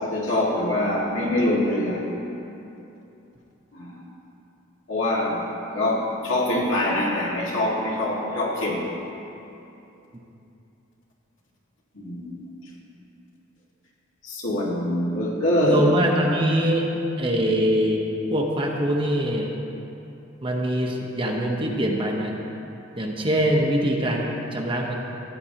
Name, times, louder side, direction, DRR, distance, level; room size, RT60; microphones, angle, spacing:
voice 1, 0.0-2.0 3.7-4.0 4.9-8.8 11.9-12.4 14.2-15.9 17.3-17.5, left 1 dB, 70° left, -4 dB, 2.0 m, -24 dB
voice 2, 15.6-16.9 17.2-19.5 20.4-22.3 23.0-24.9, equal, 25° right, 0 dB, 1.0 m, -23 dB
15.5 x 9.4 x 2.9 m, 2.9 s
head